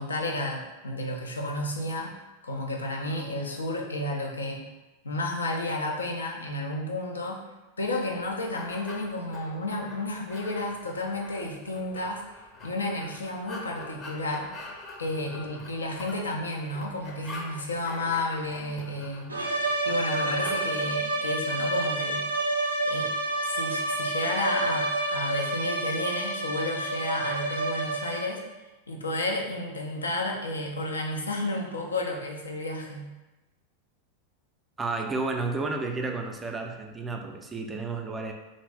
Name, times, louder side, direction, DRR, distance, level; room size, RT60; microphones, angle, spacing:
voice 1, 0.0-2.1 2.4-4.7 5.0-7.4 7.8-12.2 12.6-14.5 15.0-22.3 22.8-23.1 23.4-28.4 28.9-33.1, left 1 dB, 80° left, 1 dB, 0.4 m, -32 dB
sound 1, 7.9-20.6, left 2 dB, 25° left, 0.6 m, -44 dB
sound 2, 19.3-28.5, right 2 dB, 85° right, 0.4 m, -29 dB
voice 2, 34.8-38.3, right 3 dB, 15° right, 3 dB, 0.3 m, -31 dB
2.5 x 2.5 x 3.3 m, 1.1 s
figure-of-eight pair, 90°, 0 cm